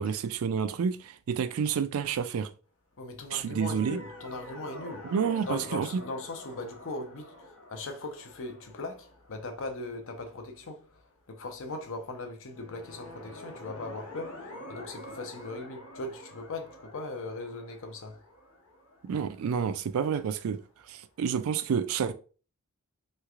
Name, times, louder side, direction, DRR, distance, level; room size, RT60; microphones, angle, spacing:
voice 1, 0.0-2.5 3.3-4.0 5.1-6.0 19.0-20.6 20.9-22.1, right 7 dB, 70° right, 0.3 m, -29 dB
voice 2, 3.0-5.1 5.4-11.0 11.3-18.2, left 2 dB, 65° left, 0.6 m, -39 dB
sound 1, 3.3-10.6 12.5-20.3, left 1 dB, 80° left, 1.1 m, -48 dB
3.2 x 3.2 x 2.4 m
head